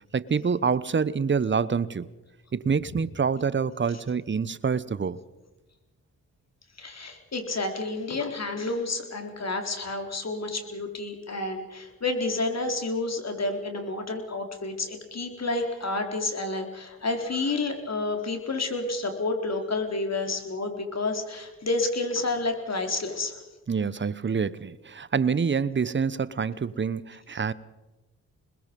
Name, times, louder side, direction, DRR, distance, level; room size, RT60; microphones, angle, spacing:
voice 1, 0.1-2.1 2.5-5.2 23.7-27.5, right 6 dB, 30° right, 0.9 m, -26 dB
voice 2, 6.8-23.4, left 2 dB, 45° left, 4.1 m, -30 dB
27.5 x 20.5 x 5.4 m
supercardioid pair, 40°, 36 cm